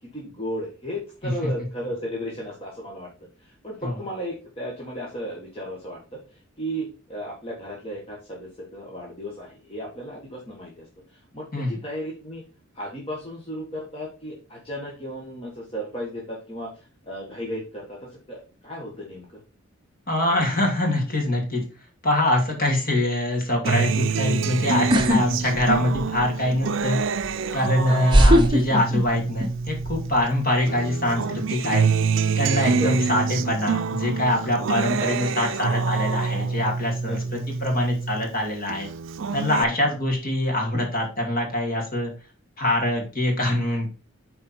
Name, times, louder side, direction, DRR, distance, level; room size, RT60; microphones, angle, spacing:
voice 1, 0.0-3.1 3.4-12.4 12.7-19.4 20.2-20.5 27.9-28.2 32.7-33.2 37.0-37.3 39.5-39.9, equal, 25° left, -3 dB, 1.6 m, -35 dB
voice 2, 20.1-21.6 22.0-27.0 27.5-31.9 32.4-38.9 39.3-42.1 42.6-43.9, left 1 dB, 45° left, 1 dB, 2.7 m, -24 dB
Acoustic guitar, 23.6-30.3 30.7-38.3 38.7-39.6, right 5 dB, 60° right, 0.5 m, -26 dB
sound 1, 24.9-25.2 25.6-26.2 27.2-27.3 28.1-29.5 29.8-30.2, equal, 20° right, 0.9 m, -18 dB
8.5 x 4.3 x 4.5 m, 0.35 s
head